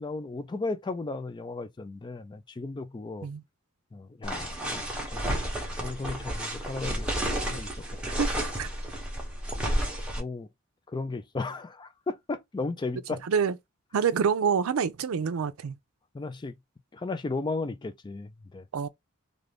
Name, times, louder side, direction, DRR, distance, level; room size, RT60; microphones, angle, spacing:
voice 1, 0.0-3.3 3.9-4.8 5.1-5.2 5.8-7.7 9.5-9.6 10.2-10.5 10.9-13.2 16.1-16.5 16.9-18.7, left 3 dB, 20° left, 0.3 m, -35 dB
sound 1, 4.2-10.2, right 1 dB, 5° right, 0.9 m, -31 dB
voice 2, 8.0-8.7 13.2-13.6 13.9-15.8 18.7-18.9, right 6 dB, 85° right, 0.4 m, -27 dB
2.5 x 2.5 x 3.3 m
head